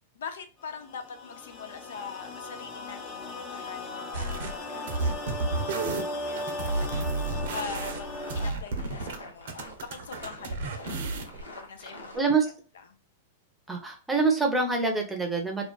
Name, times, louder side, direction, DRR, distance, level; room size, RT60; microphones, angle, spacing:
voice 1, 0.1-5.0 5.5-7.2 7.5-11.0 11.4-12.4 12.7-12.8, left 5 dB, 70° left, 8 dB, 0.4 m, -43 dB
sound 1, 0.6-8.5, left 2 dB, 25° left, 0.8 m, -37 dB
sound 2, 4.1-4.5 4.9-9.2 9.5-11.4, right 3 dB, 65° right, 0.6 m, -32 dB
sound 3, 7.2-12.2, left 1 dB, 90° left, 0.8 m, -48 dB
voice 2, 12.1-12.5 13.7-15.7, right 4 dB, 10° right, 2 dB, 0.7 m, -25 dB
2.4 x 2.3 x 2.3 m, 0.38 s
hypercardioid pair, 105°, 0 cm